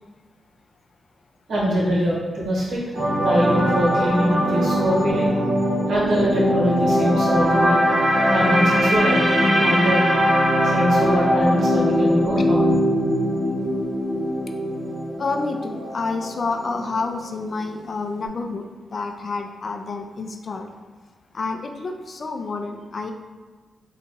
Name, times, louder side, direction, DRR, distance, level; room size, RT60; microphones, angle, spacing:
voice 1, 1.5-2.8 3.2-5.3 5.9-7.8 8.3-10.1 10.7-12.7, equal, 80° right, -6 dB, 1.4 m, -23 dB
sound 1, 2.9-17.1 17.4-17.6, equal, 60° right, 1.4 m, -21 dB
voice 2, 15.2-20.7 21.3-23.1, left 3 dB, 55° left, 5 dB, 0.5 m, -29 dB
3.9 x 2.5 x 4.4 m, 1.4 s
cardioid pair, 60°, 0 cm